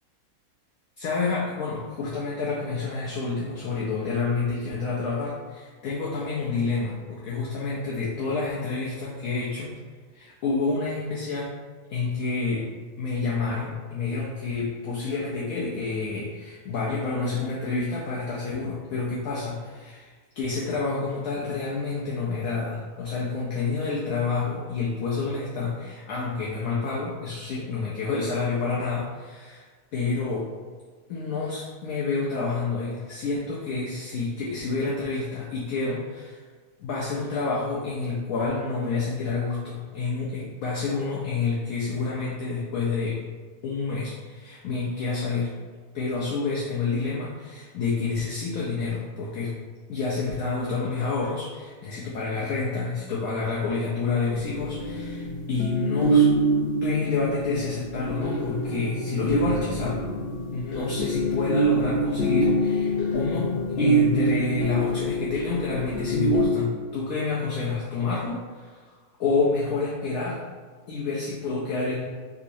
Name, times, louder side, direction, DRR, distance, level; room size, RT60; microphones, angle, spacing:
voice 1, 1.0-9.8 10.1-11.6 11.9-12.7 13.0-29.7 29.9-30.5 31.1-36.4 36.8-43.2 43.6-45.5 45.9-49.5 49.9-56.3 56.8-60.0 60.5-68.9 69.2-70.4 70.9-72.0, left 4 dB, 70° left, -5 dB, 0.9 m, -29 dB
sound 1, 54.3-66.5, right 1 dB, 85° left, 0.5 m, -25 dB
3.6 x 2.9 x 2.5 m, 1.5 s
omnidirectional pair, 1.7 m